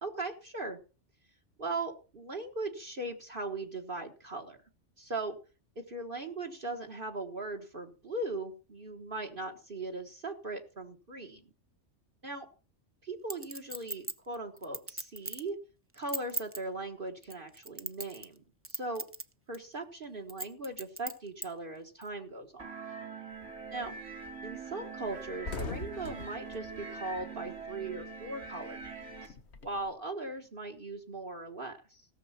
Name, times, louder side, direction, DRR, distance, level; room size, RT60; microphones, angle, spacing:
voice 1, 0.0-0.8 1.6-4.6 5.0-5.4 5.7-11.4 12.2-12.5 13.0-15.6 15.9-19.1 19.5-22.8 23.7-23.9 24.4-29.3 29.6-32.1, right 2 dB, 45° right, 2 dB, 1.7 m, -39 dB
Chink clink, 13.3-15.5 15.9-16.6 17.2-18.4 18.6-19.2 19.5-19.6 20.3-21.5 22.0-22.1, right 2 dB, 15° right, 0.6 m, -38 dB
sound 1, 22.6-29.3, right 4 dB, 75° right, 3.3 m, -43 dB
sound 2, 23.3-23.7 24.1-24.2 24.5-24.6 24.9-27.9 28.2-29.9, left 4 dB, 65° left, 1.6 m, -43 dB
17.5 x 6.9 x 5.8 m, 0.36 s
omnidirectional pair, 1.2 m